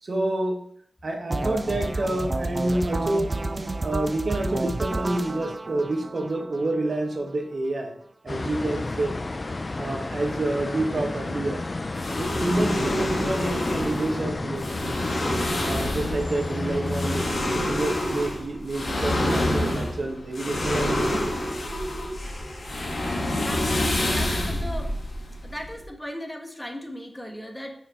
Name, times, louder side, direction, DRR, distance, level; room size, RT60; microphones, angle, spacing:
voice 1, 0.0-0.6 1.0-3.4 3.8-7.9 8.2-9.2 9.8-11.6 12.2-15.1 15.6-21.2, right 2 dB, 50° right, 2 dB, 1.1 m, -28 dB
sound 1, 1.3-7.3, right 2 dB, 35° right, 0.4 m, -30 dB
sound 2, 8.3-17.2, left 2 dB, 35° left, 0.4 m, -31 dB
sound 3, 12.0-25.9, left 1 dB, 65° left, 1.3 m, -27 dB
voice 2, 23.4-24.9 25.4-27.7, left 1 dB, 15° left, 3 dB, 1.1 m, -37 dB
5.7 x 4.4 x 4.1 m, 0.62 s
wide cardioid pair, 85°, 0 cm